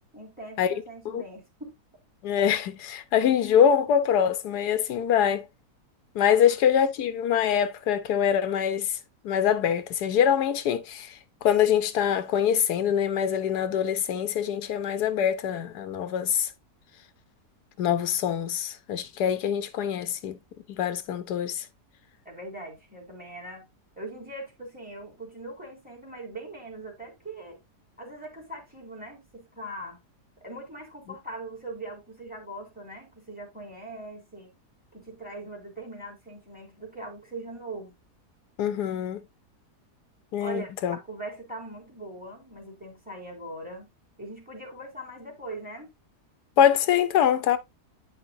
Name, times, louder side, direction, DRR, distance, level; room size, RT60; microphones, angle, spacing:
voice 1, 0.1-1.7 6.4-6.6 22.2-23.7 24.0-27.6 28.0-30.0 30.4-34.5 34.9-37.9 40.4-43.9 44.2-45.9, right 2 dB, 5° right, 3.2 m, -41 dB
voice 2, 2.2-5.4 6.2-8.9 9.2-11.1 11.4-16.5 17.8-20.4 20.8-21.6 38.6-39.2 40.3-41.0 46.6-47.6, left 9 dB, 85° left, 1.3 m, -24 dB
9.4 x 5.7 x 2.6 m
omnidirectional pair, 1.7 m